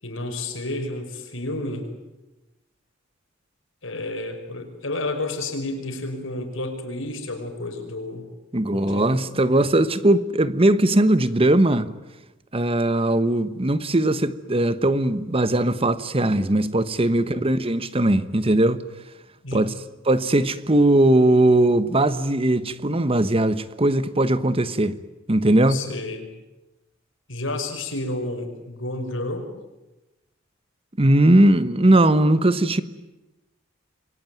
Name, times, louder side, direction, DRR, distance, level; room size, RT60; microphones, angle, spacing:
voice 1, 0.0-1.9 3.8-8.3 8.7-9.3 17.2-17.4 19.4-19.7 25.7-26.3 27.3-29.5, left 2 dB, 85° left, 5.5 m, -31 dB
voice 2, 8.5-11.9 12.5-18.8 19.5-19.7 20.0-25.0 25.3-25.8 31.0-32.8, right 1 dB, 30° right, 1.2 m, -19 dB
27.5 x 23.0 x 9.3 m
head